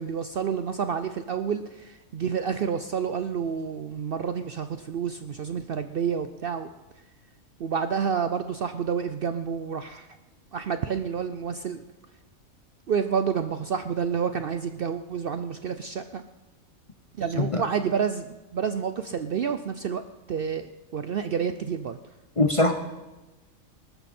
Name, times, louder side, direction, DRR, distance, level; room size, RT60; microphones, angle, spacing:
voice 1, 0.0-6.7 7.6-10.1 10.5-11.8 12.9-16.2 17.2-18.3 18.5-20.0 20.3-22.0, right 7 dB, 60° right, 10 dB, 0.6 m, -29 dB
voice 2, 22.4-22.7, left 2 dB, 30° left, 6 dB, 0.6 m, -21 dB
20.5 x 12.5 x 4.3 m, 1.1 s
omnidirectional pair, 1.4 m